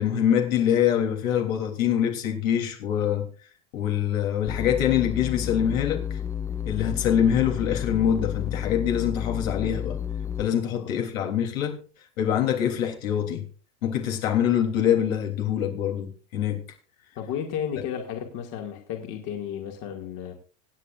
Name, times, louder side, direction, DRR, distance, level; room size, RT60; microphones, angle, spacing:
voice 1, 0.0-3.2 3.7-6.2 6.6-10.0 10.4-11.8 12.2-13.4 13.8-16.6, left 9 dB, 90° left, 2 dB, 3.4 m, -24 dB
sound 1, 4.5-10.4, left 8 dB, 10° left, 0.4 m, -31 dB
voice 2, 10.5-11.0 17.2-20.3, left 9 dB, 55° left, 2 dB, 2.2 m, -33 dB
25.0 x 8.6 x 2.5 m, 0.38 s
supercardioid pair, 135°, 39 cm